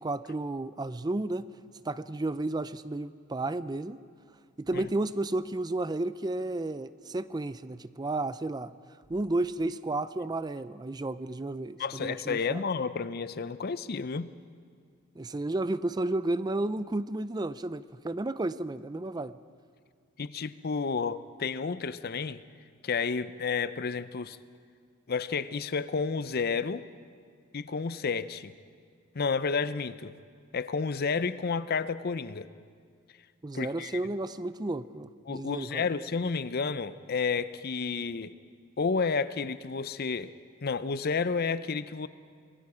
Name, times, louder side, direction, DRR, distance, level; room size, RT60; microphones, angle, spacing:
voice 1, 0.0-1.5 1.8-4.0 4.6-8.7 9.1-12.6 15.2-19.4 33.4-35.9, right 2 dB, 20° right, 15 dB, 0.4 m, -32 dB
voice 2, 11.8-14.3 20.2-22.4 22.8-24.4 25.1-26.8 27.5-28.5 29.1-30.1 30.5-32.5 33.5-34.0 35.3-38.3 38.8-40.3 40.6-42.1, left 5 dB, 45° left, 14 dB, 0.5 m, -31 dB
26.0 x 20.5 x 4.9 m, 2.1 s
head